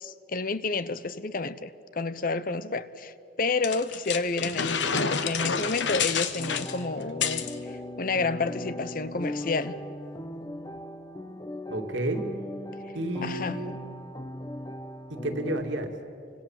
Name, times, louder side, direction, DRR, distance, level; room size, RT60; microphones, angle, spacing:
voice 1, 0.0-1.7 2.0-3.1 3.4-7.4 8.0-9.8 13.2-13.6, left 3 dB, 45° left, 0.8 m, -30 dB
sound 1, 3.6-7.5, left 6 dB, 70° left, 1.3 m, -29 dB
sound 2, 6.4-15.6, left 1 dB, 20° left, 0.9 m, -38 dB
voice 2, 11.7-12.3 12.9-13.7 15.1-15.9, right 1 dB, 75° right, 2.6 m, -31 dB
30.0 x 25.0 x 7.4 m
head